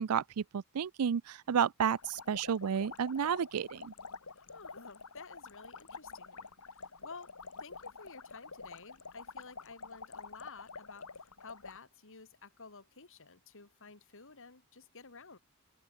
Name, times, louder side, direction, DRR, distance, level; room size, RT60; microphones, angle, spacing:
voice 1, 0.0-3.9, right 7 dB, 75° right, 0.5 m, -31 dB
sound 1, 1.8-11.8, left 4 dB, 85° left, 3.1 m, -48 dB
voice 2, 4.3-7.3 7.6-15.4, left 4 dB, 60° left, 2.8 m, -52 dB
head